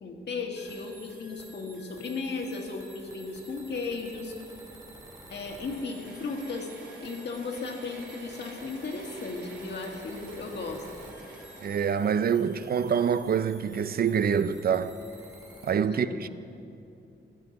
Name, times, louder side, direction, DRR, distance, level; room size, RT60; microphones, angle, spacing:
voice 1, 0.0-4.3 5.3-6.7 7.0-10.8 15.9-16.2, left 4 dB, 60° left, 1.7 m, -35 dB
sound 1, 0.6-15.7, right 1 dB, 15° right, 2.2 m, -51 dB
Mechanisms / Drill, 5.3-13.9, right 3 dB, 70° right, 2.3 m, -49 dB
voice 2, 11.6-14.9 15.6-16.3, right 7 dB, 50° right, 0.4 m, -26 dB
17.0 x 12.5 x 4.0 m
wide cardioid pair, 150°, 20 cm